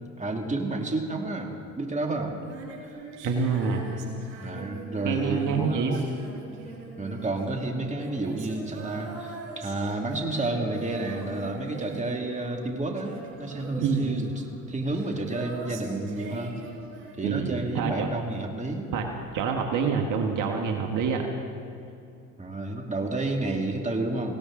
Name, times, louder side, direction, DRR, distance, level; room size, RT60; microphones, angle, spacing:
voice 1, 0.0-2.4 2.8-2.9 4.4-6.2 7.0-16.6 17.2-18.9 22.4-24.4, right 2 dB, 20° right, 2 dB, 2.3 m, -30 dB
Female singing, 2.4-17.7 19.3-19.4, right 3 dB, 80° right, 4.8 m, -41 dB
voice 2, 3.2-3.8 5.0-6.0 13.8-14.3 17.2-18.1 18.9-19.1 19.3-21.2, right 5 dB, 60° right, 3 dB, 1.6 m, -26 dB
19.0 x 17.0 x 3.8 m, 2.6 s
hypercardioid pair, 70°, 34 cm